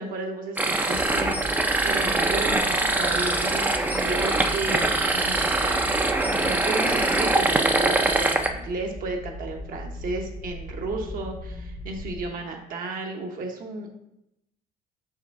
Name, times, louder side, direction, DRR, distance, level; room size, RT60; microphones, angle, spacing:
voice 1, 0.0-13.9, right 3 dB, 55° right, 2 dB, 0.9 m, -33 dB
sound 1, 0.6-8.5, right 2 dB, 10° right, 0.4 m, -23 dB
sound 2, 0.9-12.2, left 1 dB, 65° left, 1.0 m, -38 dB
4.7 x 2.5 x 4.6 m, 0.83 s
cardioid pair, 110°, 17 cm